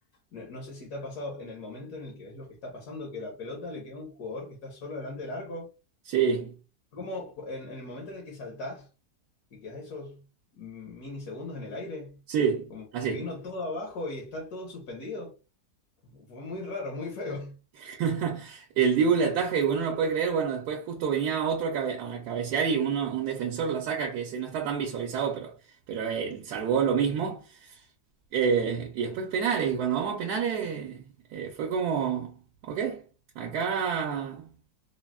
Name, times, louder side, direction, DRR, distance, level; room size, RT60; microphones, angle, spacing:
voice 1, 0.3-5.7 6.9-8.9 9.5-10.2 10.5-12.2 12.7-15.3 16.1-17.6, left 2 dB, 75° left, 1.4 m, -38 dB
voice 2, 6.1-6.5 12.3-13.2 17.8-25.5 25.9-27.7 28.3-31.1 31.3-32.3 32.6-33.0 33.4-34.5, right 6 dB, 80° right, 1.1 m, -28 dB
3.8 x 2.0 x 2.2 m
omnidirectional pair, 1.7 m